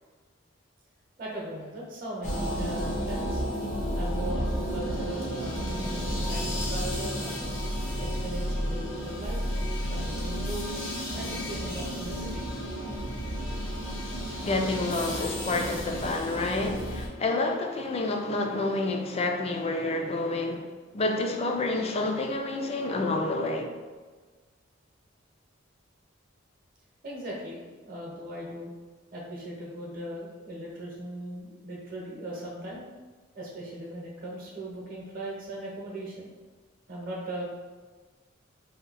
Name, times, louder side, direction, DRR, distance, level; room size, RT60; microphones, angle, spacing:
voice 1, 1.2-3.4 3.9-7.5 8.0-9.4 9.8-10.7 11.1-12.5 27.0-28.7 29.1-32.8 33.3-36.3 36.9-37.4, right 1 dB, 45° right, -4 dB, 0.8 m, -38 dB
sound 1, 2.2-17.1, equal, 85° left, 1.0 m, -32 dB
voice 2, 14.4-20.7 20.9-23.7, left 2 dB, 30° left, 3 dB, 0.4 m, -29 dB
2.8 x 2.7 x 4.0 m, 1.4 s
head